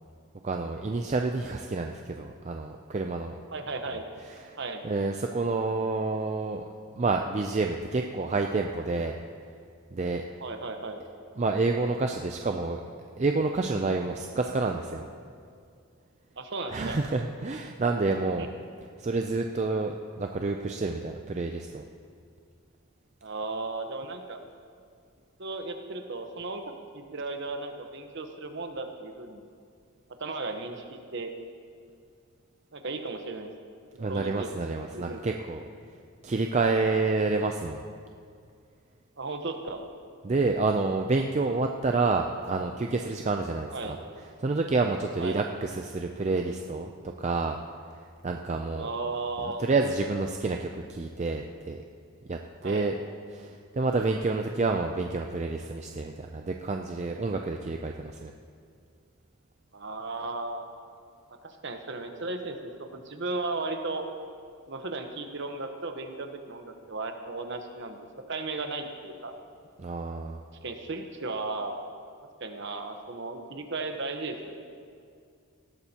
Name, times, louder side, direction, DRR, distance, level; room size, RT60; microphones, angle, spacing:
voice 1, 0.4-3.4 4.3-4.6 4.8-6.7 6.9-9.1 9.9-10.2 11.4-12.8 13.2-15.1 16.7-18.5 19.0-21.8 34.0-35.6 36.2-37.8 40.2-44.0 44.4-47.6 47.9-48.9 49.4-51.8 52.3-52.9 53.3-58.3 69.8-70.4, right 3 dB, 30° right, 3 dB, 0.4 m, -29 dB
voice 2, 3.5-4.2 4.6-4.8 10.4-11.0 16.4-17.0 18.4-18.5 23.2-24.4 25.4-29.4 30.2-31.3 32.7-33.5 34.1-34.5 34.9-35.2 39.2-39.9 43.7-44.0 45.2-45.4 48.7-49.6 52.6-52.9 59.7-60.7 61.4-64.1 64.7-68.0 68.3-69.3 70.6-71.8 72.4-74.5, right 3 dB, 55° right, 5 dB, 1.0 m, -35 dB
18.5 x 12.5 x 2.9 m, 2.3 s
head